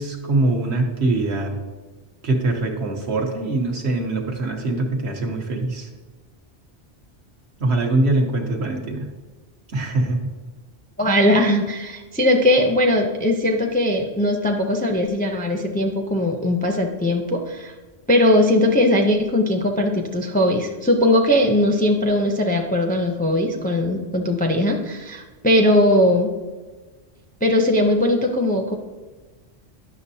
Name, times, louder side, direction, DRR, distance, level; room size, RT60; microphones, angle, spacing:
voice 1, 0.0-1.6 2.2-5.9 7.6-9.1 9.7-10.3, right 2 dB, 75° right, 2 dB, 1.2 m, -23 dB
voice 2, 11.0-17.7 18.1-26.3 27.4-28.7, left 1 dB, 15° left, 2 dB, 0.4 m, -19 dB
10.5 x 6.1 x 2.7 m, 1.3 s
omnidirectional pair, 1.1 m